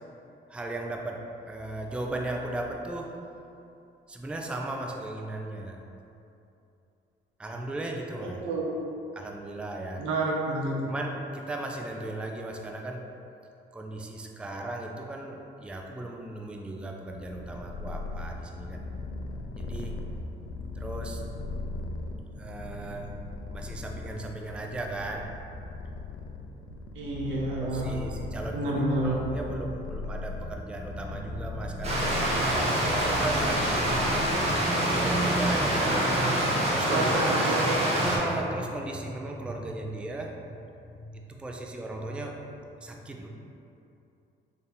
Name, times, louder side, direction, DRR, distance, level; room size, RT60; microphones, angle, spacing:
voice 1, 0.5-3.1 4.1-5.8 7.4-8.4 9.1-10.0 10.8-13.0 13.7-18.8 19.6-20.0 20.7-21.2 22.4-23.1 23.5-25.3 27.6-37.1 37.4-43.3, right 2 dB, 5° right, 1 dB, 0.3 m, -36 dB
voice 2, 10.0-10.8 26.9-27.9 28.5-29.2 35.8-36.0 36.9-37.8, right 2 dB, 90° right, -3 dB, 0.8 m, -28 dB
Purr, 17.1-34.8, left 2 dB, 80° left, 0.4 m, -38 dB
Stream, 31.8-38.2, right 1 dB, 35° right, 1.0 m, -26 dB
3.4 x 2.6 x 4.0 m, 2.7 s
cardioid pair, 90°, 20 cm